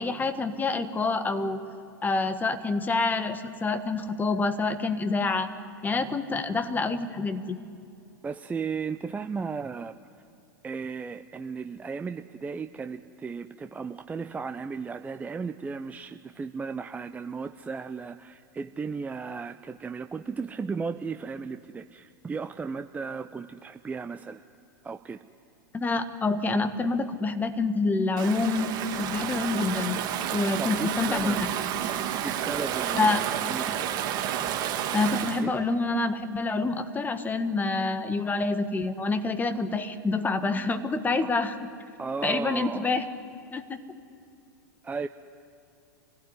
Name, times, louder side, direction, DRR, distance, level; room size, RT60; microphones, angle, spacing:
voice 1, 0.0-1.6 2.0-5.5 5.8-7.6 25.7-28.7 29.0-30.0 30.3-31.5 32.9-33.2 34.9-41.5 42.2-43.0 43.5-43.8, left 3 dB, 15° left, 9 dB, 1.6 m, -27 dB
voice 2, 8.2-10.0 10.6-24.4 24.8-25.2 30.6-31.4 32.2-33.8 35.4-35.5 41.2-41.4 42.0-42.9 44.8-45.1, right 5 dB, 15° right, 9 dB, 0.6 m, -35 dB
Stream / Ocean, 28.2-35.4, right 10 dB, 40° right, 2.1 m, -30 dB
24.5 x 16.5 x 9.8 m, 2.4 s
hypercardioid pair, 100°, 11 cm